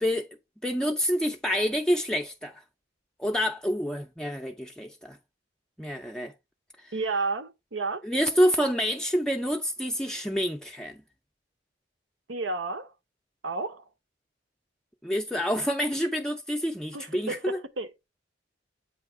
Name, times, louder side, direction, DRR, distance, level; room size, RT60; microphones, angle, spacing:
voice 1, 0.6-2.6 3.2-5.2 5.8-6.3 6.8-6.9 8.0-11.0 15.0-17.6, equal, 5° left, 0.4 m, -27 dB
voice 2, 6.9-8.0 12.3-12.9 13.4-13.8 16.9-17.9, right 3 dB, 85° right, 0.8 m, -31 dB
8.2 x 2.8 x 4.6 m
head